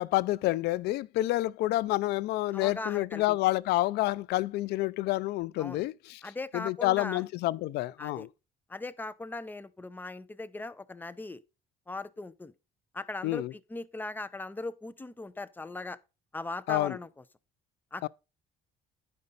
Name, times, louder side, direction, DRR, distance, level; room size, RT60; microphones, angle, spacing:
voice 1, 0.0-6.2 6.5-8.3 13.2-13.5 16.7-17.0 18.0-18.1, left 17 dB, 80° left, 0.4 m, -28 dB
voice 2, 2.5-3.4 5.6-5.8 6.2-7.2 8.0-8.3 8.7-11.4 11.9-12.5 12.9-16.0 16.3-17.2 17.9-18.1, left 2 dB, 10° left, 0.5 m, -39 dB
9.7 x 5.4 x 3.9 m
cardioid pair, 110°, 17 cm